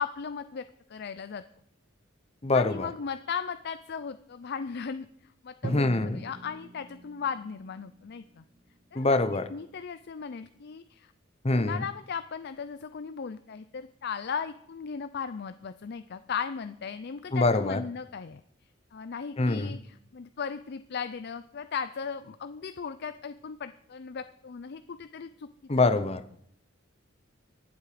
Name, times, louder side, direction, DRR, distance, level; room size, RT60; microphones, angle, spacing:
voice 1, 0.0-1.4 2.5-8.4 8.9-9.2 9.5-11.1 11.5-18.4 18.9-25.5, left 6 dB, 55° left, 12 dB, 0.5 m, -37 dB
voice 2, 2.4-2.9 5.6-6.2 8.9-9.5 11.4-11.8 17.3-17.8 19.4-19.8 25.7-26.2, left 2 dB, 30° left, 12 dB, 0.8 m, -24 dB
Drum, 5.6-9.4, right 1 dB, 25° right, 0.7 m, -42 dB
23.5 x 8.0 x 5.0 m, 0.69 s
head